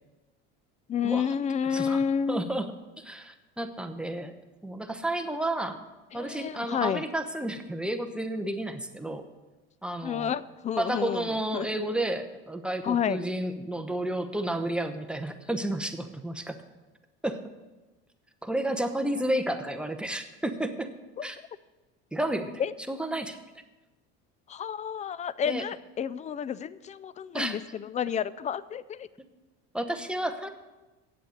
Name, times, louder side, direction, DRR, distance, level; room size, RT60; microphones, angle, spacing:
voice 1, 0.9-2.5 6.1-7.0 10.0-11.3 11.5-11.7 12.8-13.2 21.2-21.3 22.6-22.7 24.5-29.1, left 7 dB, 25° left, 18 dB, 0.4 m, -30 dB
voice 2, 1.7-2.0 2.3-4.3 4.6-5.8 6.1-9.3 9.8-10.4 10.8-16.6 17.2-17.4 18.4-20.9 21.2-21.4 22.1-22.6 22.9-23.4 25.4-25.6 27.3-27.6 29.7-30.5, right 1 dB, 5° right, 6 dB, 0.9 m, -31 dB
8.6 x 7.8 x 7.8 m, 1.1 s
supercardioid pair, 100°, 31 cm